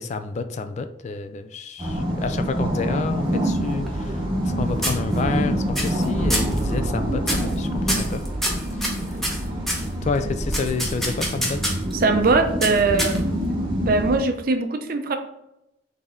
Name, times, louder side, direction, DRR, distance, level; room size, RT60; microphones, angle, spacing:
voice 1, 0.0-4.3 4.5-8.2 8.7-8.9 10.0-11.7, left 4 dB, 40° left, 9 dB, 0.3 m, -29 dB
sound 1, 1.8-14.2, equal, 25° right, 0.9 m, -26 dB
sound 2, 3.6-4.5 4.8-5.4 5.7-6.0 6.3-6.6 7.2-7.5 7.9-9.9 10.5-11.9 12.6-13.4, equal, ahead, 0.8 m, -27 dB
voice 2, 11.9-13.2 13.9-15.2, right 3 dB, 50° right, 7 dB, 0.5 m, -21 dB
4.3 x 3.4 x 3.6 m, 0.85 s
head